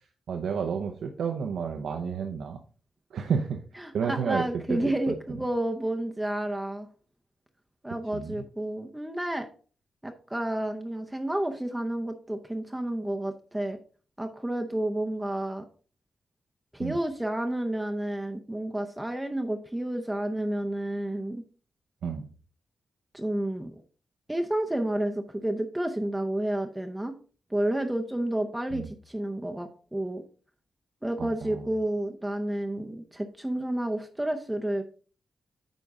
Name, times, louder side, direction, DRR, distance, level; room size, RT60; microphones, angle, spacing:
voice 1, 0.3-2.6 3.1-3.6 3.9-5.1 8.1-8.4 16.8-17.0 22.0-22.3 28.7-28.9 31.2-31.7, right 6 dB, 85° right, 4 dB, 0.8 m, -31 dB
voice 2, 3.8-6.9 7.8-9.5 10.0-13.8 14.2-15.6 16.7-21.4 23.1-23.8 24.3-27.2 27.5-30.2 31.0-34.8, right 1 dB, 5° right, 4 dB, 0.6 m, -30 dB
9.2 x 5.3 x 3.6 m, 0.39 s
wide cardioid pair, 155°, 0 cm